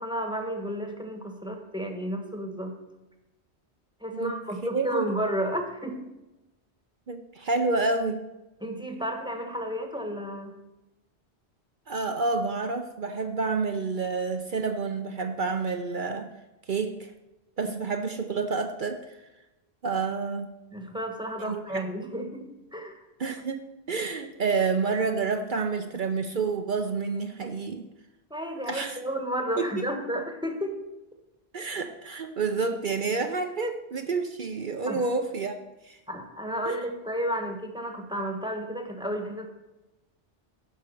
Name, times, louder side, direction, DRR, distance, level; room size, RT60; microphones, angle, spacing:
voice 1, 0.0-2.8 4.0-6.0 8.6-10.6 20.7-23.0 28.3-30.8 34.9-35.0 36.1-39.5, equal, 5° right, 3 dB, 1.2 m, -32 dB
voice 2, 4.6-5.0 7.1-8.3 11.9-16.3 16.7-17.1 17.6-19.0 19.8-20.5 21.5-21.8 23.2-23.6 23.9-27.8 28.7-29.0 29.6-29.7 31.5-35.6 35.8-36.0 36.7-36.8, right 4 dB, 50° right, 7 dB, 0.8 m, -29 dB
12.0 x 5.2 x 6.8 m, 1.0 s
omnidirectional pair, 1.2 m